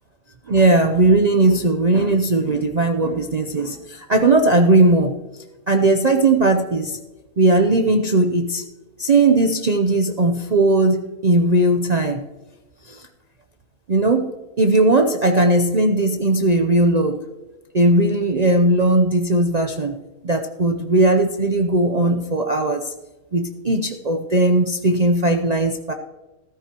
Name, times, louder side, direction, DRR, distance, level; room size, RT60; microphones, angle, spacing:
voice 1, 0.5-5.1 5.7-7.0 7.4-8.6 9.0-12.2 12.9-13.0 13.9-17.2 17.7-20.0 20.2-22.9 23.3-25.9, right 2 dB, 55° right, 5 dB, 0.4 m, -18 dB
14.5 x 13.0 x 2.9 m, 1.1 s
omnidirectional pair, 1.6 m